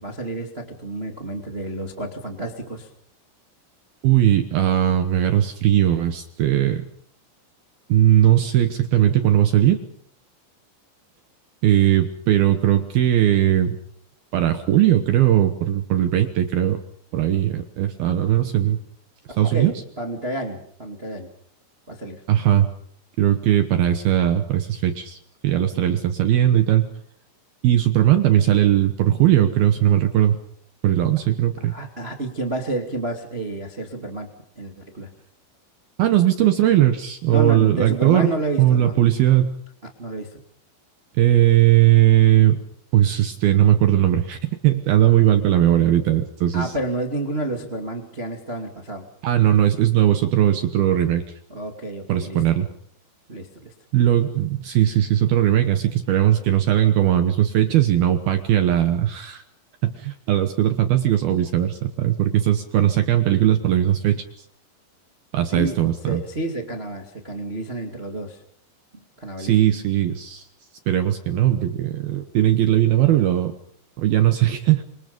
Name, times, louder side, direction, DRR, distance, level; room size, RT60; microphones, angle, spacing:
voice 1, 0.0-2.9 19.5-21.3 21.9-22.2 31.6-34.3 34.5-35.1 37.3-38.9 40.0-40.4 46.5-49.1 51.5-52.6 53.3-53.7 65.5-68.4 69.2-69.5, right 2 dB, 40° right, 3 dB, 0.8 m, -30 dB
voice 2, 4.0-6.9 7.9-9.8 11.6-13.8 14.3-16.8 17.1-18.8 19.4-19.7 22.3-22.7 23.2-25.2 25.4-26.9 27.6-30.4 30.8-31.7 36.0-38.3 38.6-39.6 41.1-42.6 42.9-44.4 44.6-46.7 49.2-51.2 52.1-52.7 53.9-59.4 59.8-64.2 65.3-66.2 69.4-70.4 70.9-73.5 74.0-74.8, right 12 dB, 75° right, 8 dB, 2.3 m, -18 dB
27.0 x 26.5 x 5.3 m, 0.64 s
omnidirectional pair, 5.9 m